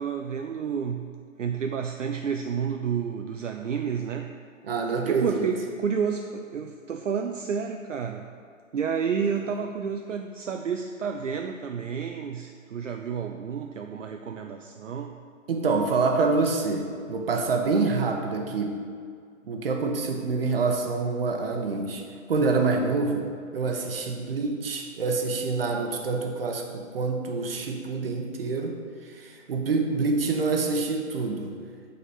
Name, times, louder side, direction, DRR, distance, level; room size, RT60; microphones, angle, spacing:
voice 1, 0.0-4.3 5.1-8.3 8.7-15.2, right 6 dB, 65° right, 5 dB, 0.6 m, -30 dB
voice 2, 4.6-5.5 15.5-18.8 19.5-23.3 23.5-31.5, right 4 dB, 45° right, 3 dB, 1.0 m, -26 dB
8.4 x 4.0 x 5.8 m, 2.2 s
figure-of-eight pair, 140°, 40 cm